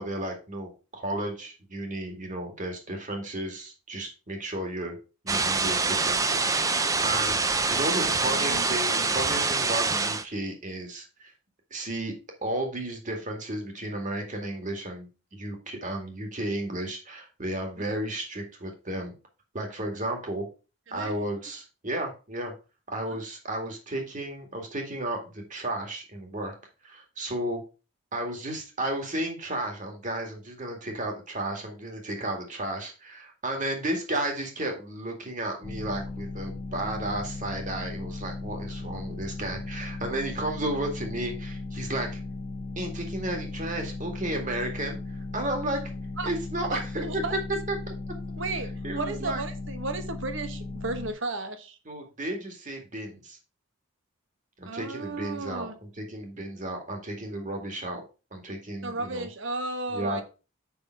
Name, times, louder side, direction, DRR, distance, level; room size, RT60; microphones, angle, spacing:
voice 1, 0.0-5.0 5.2-11.3 11.7-12.1 12.4-19.1 19.5-20.5 20.9-22.5 22.9-26.5 26.8-27.6 28.1-42.2 42.8-45.8 46.2-47.9 48.8-49.4 51.9-53.4 54.6-58.0 58.3-59.3 59.9-60.2, right 1 dB, 40° right, 3 dB, 2.1 m, -33 dB
sound 1, 5.3-10.2, right 4 dB, 15° right, 0.6 m, -25 dB
voice 2, 8.2-8.7 8.9-9.1 17.8-17.9 20.9-21.2 23.1-23.2 46.2-46.3 46.7-47.4 48.4-51.8 54.7-55.7 58.8-60.2, right 3 dB, 65° right, 8 dB, 1.3 m, -34 dB
sound 2, 35.6-51.1, left 3 dB, 45° left, 1.2 m, -37 dB
7.0 x 5.8 x 4.7 m, 0.32 s
head